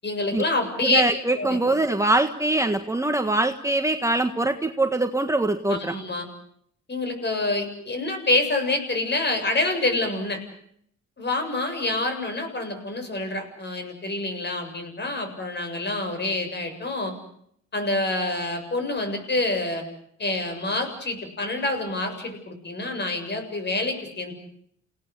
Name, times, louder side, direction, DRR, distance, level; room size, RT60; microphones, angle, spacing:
voice 1, 0.0-1.0 1.3-1.6 5.7-6.3 6.9-10.4 11.2-17.1 17.7-19.8 20.2-24.3, left 2 dB, 35° left, 7 dB, 7.5 m, -27 dB
voice 2, 0.8-5.9, right 2 dB, 10° right, 6 dB, 1.5 m, -23 dB
29.5 x 18.0 x 8.5 m, 0.69 s
cardioid pair, 90°, 30 cm